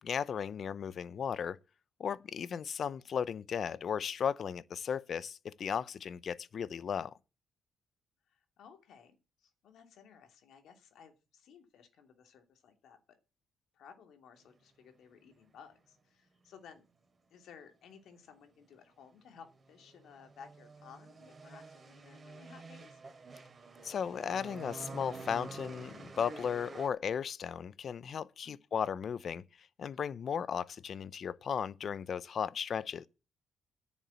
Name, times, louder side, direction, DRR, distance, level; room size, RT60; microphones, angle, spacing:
voice 1, 0.0-1.6 2.0-7.1 23.8-33.1, left 7 dB, 55° left, 0.7 m, -36 dB
voice 2, 8.3-13.0 13.7-16.8 17.3-23.0 28.4-28.6, left 7 dB, 75° left, 2.8 m, -57 dB
sound 1, 19.3-26.9, right 3 dB, 30° right, 3.1 m, -49 dB
10.5 x 7.2 x 8.3 m
cardioid pair, 90°, 0 cm